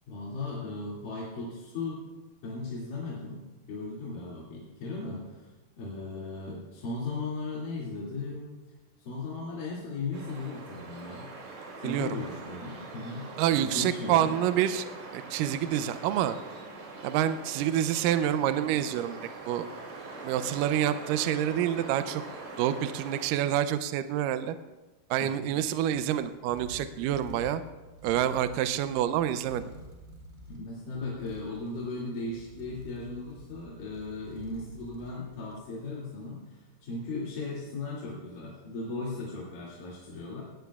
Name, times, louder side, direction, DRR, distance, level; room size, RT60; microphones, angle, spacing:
voice 1, 0.1-2.0 2.4-3.4 3.7-5.5 5.8-8.5 9.0-11.3 11.8-13.3 13.6-14.3 25.2-25.5 30.5-40.4, left 3 dB, 75° left, -7 dB, 4.1 m, -37 dB
sound 1, 10.1-23.2, right 3 dB, 60° right, 3.8 m, -43 dB
voice 2, 11.8-12.2 13.4-14.9 15.1-16.4 17.0-19.2 19.5-19.7 20.2-22.2 22.6-24.6 25.1-27.6 28.0-29.6, right 11 dB, 80° right, 10 dB, 2.1 m, -27 dB
sound 2, 26.3-35.8, left 1 dB, 20° right, 3.0 m, -49 dB
18.5 x 17.0 x 2.4 m, 1.1 s
omnidirectional pair, 4.0 m